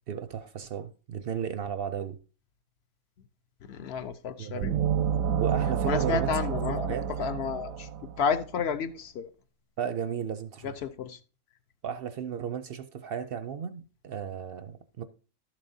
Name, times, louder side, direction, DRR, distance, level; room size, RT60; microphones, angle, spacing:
voice 1, 0.1-2.2 4.4-5.0 5.4-6.6 6.9-7.1 9.8-10.8 11.8-15.0, right 8 dB, 60° right, 0.6 m, -35 dB
voice 2, 3.7-4.7 5.9-7.9 8.2-9.3 10.6-11.2, left 6 dB, 60° left, 0.8 m, -31 dB
sound 1, 4.6-8.4, right 8 dB, 85° right, 1.0 m, -29 dB
12.0 x 7.4 x 2.6 m
omnidirectional pair, 1.4 m